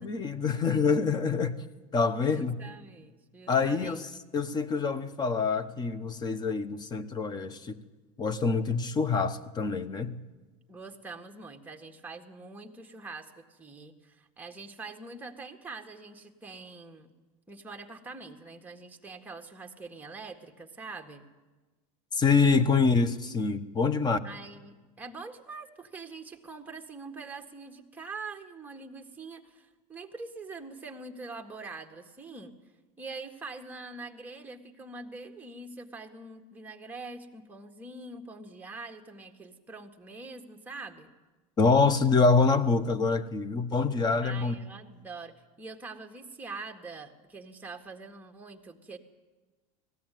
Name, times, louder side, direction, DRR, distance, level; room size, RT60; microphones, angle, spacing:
voice 1, 0.0-1.6 1.9-2.6 3.5-7.8 8.2-10.2 22.2-24.2 41.6-44.5, left 4 dB, 25° left, 1.1 m, -26 dB
voice 2, 2.2-4.0 10.7-17.1 17.5-21.2 24.2-32.5 33.0-41.1 44.2-49.0, right 3 dB, 10° right, 1.7 m, -44 dB
19.5 x 15.5 x 9.2 m
supercardioid pair, 130°, 17 cm